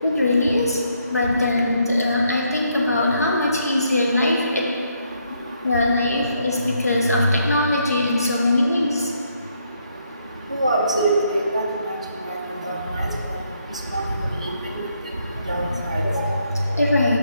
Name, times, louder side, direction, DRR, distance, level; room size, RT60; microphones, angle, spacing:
voice 1, 0.0-0.8 1.1-4.7 5.6-9.1 15.5-17.2, left 1 dB, 60° left, -2 dB, 1.3 m, -21 dB
voice 2, 10.5-11.6 12.3-12.4 12.6-13.0 13.9-14.0 14.7-14.8 15.5-15.6 15.9-16.0, right 2 dB, 20° right, -2 dB, 0.5 m, -22 dB
6.5 x 5.3 x 4.6 m, 2.4 s
figure-of-eight pair, 175°, 10 cm